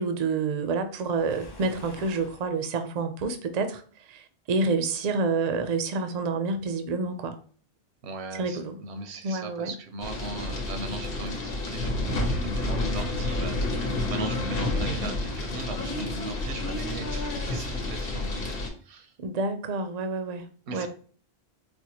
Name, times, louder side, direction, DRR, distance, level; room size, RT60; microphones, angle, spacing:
voice 1, 0.0-7.4 8.3-8.8 9.2-9.7 19.2-20.5 20.7-20.9, right 3 dB, 55° right, 8 dB, 0.5 m, -28 dB
Waves surf, 1.0-2.5, left 2 dB, 40° left, 0.3 m, -46 dB
voice 2, 8.0-19.1 20.7-20.9, right 2 dB, 85° right, 6 dB, 0.9 m, -38 dB
sound 1, 10.0-18.7, left 2 dB, 65° left, 1.0 m, -30 dB
4.4 x 2.1 x 2.8 m, 0.43 s
omnidirectional pair, 1.1 m